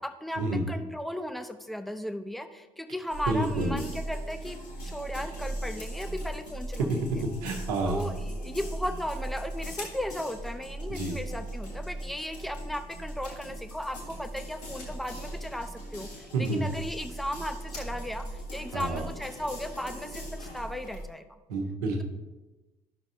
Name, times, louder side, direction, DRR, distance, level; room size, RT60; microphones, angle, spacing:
voice 1, 0.0-7.0 7.8-21.2, equal, ahead, 8 dB, 0.6 m, -36 dB
sound 1, 3.1-21.1, right 1 dB, 80° left, 1.7 m, -39 dB
voice 2, 3.3-3.8 7.2-8.0 10.9-11.2 16.3-16.7 18.7-19.0 21.5-22.0, right 2 dB, 70° right, 2 dB, 1.1 m, -29 dB
11.5 x 6.0 x 2.8 m, 1.1 s
figure-of-eight pair, 50°, 20 cm